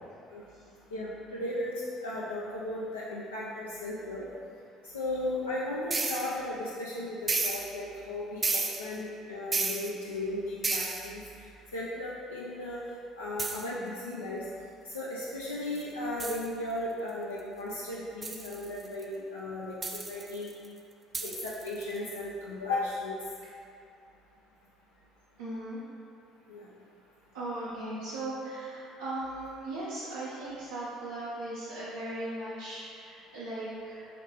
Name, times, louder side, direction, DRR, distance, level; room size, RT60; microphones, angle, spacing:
voice 1, 0.9-4.2 4.8-11.5 11.7-12.8 13.2-14.5 14.8-20.5 21.2-23.2 26.5-26.7, left 1 dB, 90° left, -7 dB, 0.4 m, -36 dB
sound 1, 5.9-6.4 7.3-7.7 8.4-8.9 9.5-9.9 10.6-11.1 13.4-13.7 14.9-15.0 15.8-15.9 16.2-16.5 18.2-19.0 19.8-20.7 21.1-22.0, right 3 dB, 30° right, 0.4 m, -32 dB
voice 2, 25.4-25.8 27.3-34.2, right 1 dB, 85° right, -12 dB, 0.6 m, -38 dB
4.1 x 3.1 x 2.9 m, 2.5 s
hypercardioid pair, 60°, 0 cm